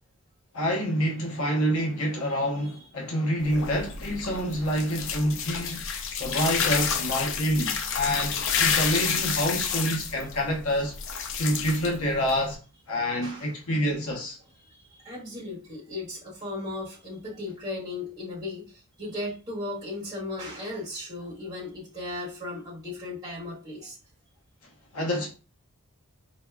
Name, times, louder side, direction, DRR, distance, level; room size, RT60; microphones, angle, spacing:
voice 1, 0.5-5.8 6.2-10.9 11.4-12.6 12.9-14.4 24.9-25.3, equal, 75° left, 0.9 m, -27 dB
sound 1, 3.4-12.5, left 6 dB, 60° left, 0.5 m, -29 dB
voice 2, 13.2-13.5 14.6-24.0, left 2 dB, 20° right, 1.6 m, -36 dB
4.2 x 2.8 x 2.2 m
head